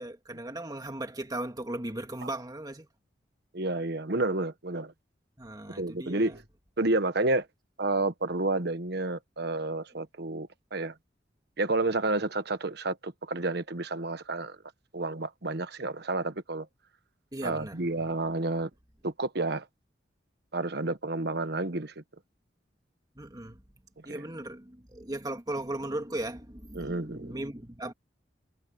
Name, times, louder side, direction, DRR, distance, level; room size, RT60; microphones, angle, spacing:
voice 1, 0.0-2.9 5.4-6.4 17.3-17.8 23.2-23.6 24.0-27.9, right 1 dB, 20° right, 2.2 m, -37 dB
voice 2, 3.5-4.9 5.8-6.4 6.8-7.5 7.8-10.9 11.6-14.6 14.9-16.7 17.4-18.7 19.0-19.6 20.5-21.9 24.1-24.2 26.7-27.3, right 2 dB, 65° right, 1.3 m, -30 dB
head